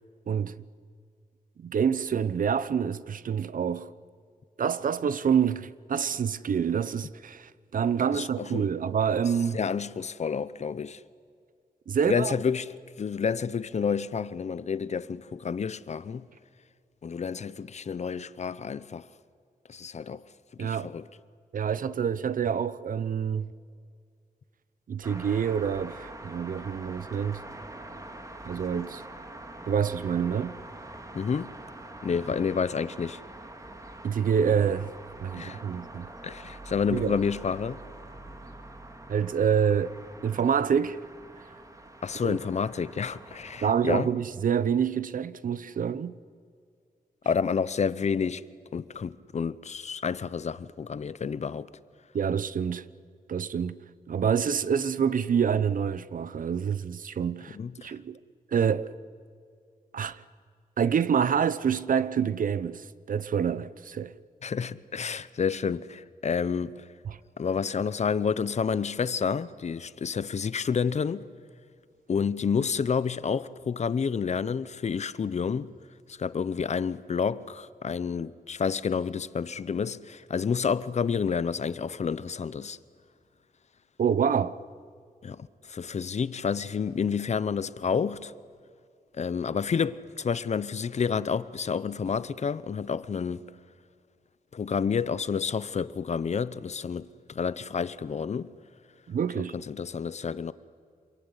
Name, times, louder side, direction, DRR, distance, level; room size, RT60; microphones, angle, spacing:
voice 1, 1.6-3.9 4.6-9.6 11.9-12.3 20.6-20.9 21.5-23.5 24.9-27.4 28.4-29.0 29.7-30.5 34.0-34.9 35.2-36.1 36.9-37.2 39.1-39.9 40.2-41.0 42.2-42.4 43.6-46.1 52.1-52.8 53.3-53.8 54.1-57.6 57.8-58.2 58.5-58.9 59.9-60.2 60.8-64.1 67.1-67.2 84.0-84.6 99.1-99.6, right 7 dB, 65° right, 0.8 m, -27 dB
voice 2, 8.1-8.7 9.5-11.0 12.1-16.3 17.0-19.1 19.7-20.2 20.6-21.1 31.1-31.5 32.0-33.2 35.3-35.6 36.2-37.8 42.0-44.1 47.2-48.4 48.7-51.7 57.5-58.0 64.4-66.9 67.4-71.3 72.1-75.7 76.1-82.8 85.2-88.3 89.1-93.5 94.5-98.5 99.4-100.5, left 6 dB, 50° left, 0.8 m, -29 dB
sound 1, 25.0-44.0, right 2 dB, 20° right, 2.0 m, -45 dB
27.0 x 22.0 x 9.9 m
wide cardioid pair, 130°, 15 cm